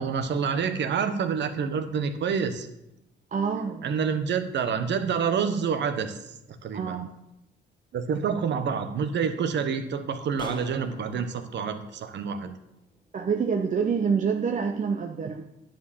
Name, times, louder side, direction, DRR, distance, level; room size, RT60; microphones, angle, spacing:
voice 1, 0.0-2.7 3.8-7.0 7.9-12.5, right 6 dB, 65° right, 8 dB, 1.2 m, -28 dB
voice 2, 3.3-4.1 6.7-7.1 13.1-15.5, right 6 dB, 40° right, 4 dB, 0.8 m, -27 dB
sound 1, 10.4-13.0, left 2 dB, 25° left, 1.2 m, -45 dB
10.0 x 4.5 x 7.3 m, 0.87 s
cardioid pair, 90°, 20 cm